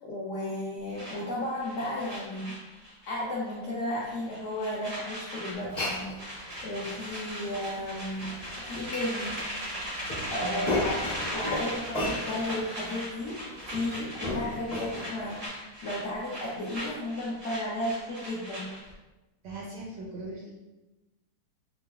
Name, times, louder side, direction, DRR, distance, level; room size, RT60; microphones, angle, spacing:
voice 1, 0.0-2.6 3.1-9.4 10.3-11.0 11.3-13.4 13.7-18.6, left 1 dB, 75° left, -6 dB, 0.9 m, -34 dB
sound 1, 0.9-3.2 3.5-3.7 4.0-18.9, equal, 55° right, 0.5 m, -39 dB
Glass, 5.5-15.5, left 2 dB, 60° left, 0.4 m, -36 dB
voice 2, 10.4-10.9 19.4-20.5, right 1 dB, 75° right, -4 dB, 1.1 m, -39 dB
5.0 x 2.0 x 2.3 m, 1.1 s
omnidirectional pair, 2.4 m